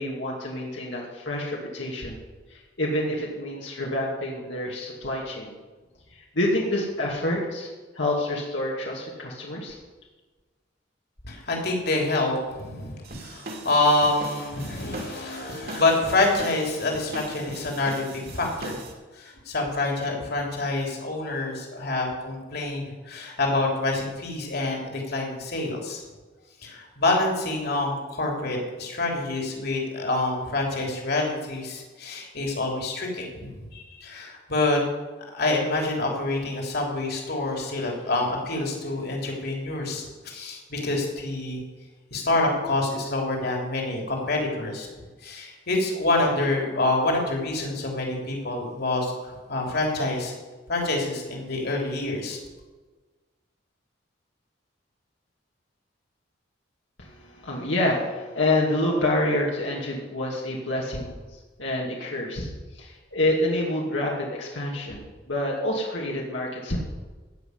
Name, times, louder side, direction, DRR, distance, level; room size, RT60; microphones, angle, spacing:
voice 1, 0.0-2.2 2.5-5.6 6.1-7.7 7.9-9.8 57.0-66.8, left 1 dB, 80° left, -3 dB, 2.6 m, -28 dB
voice 2, 11.2-18.8 19.2-26.0 26.6-34.8 35.3-41.6 42.1-44.9 45.2-50.3 50.7-52.4, left 2 dB, 60° left, 0 dB, 3.4 m, -27 dB
sound 1, 13.0-18.9, right 1 dB, 55° right, 2.8 m, -39 dB
16.0 x 6.0 x 9.7 m, 1.3 s
head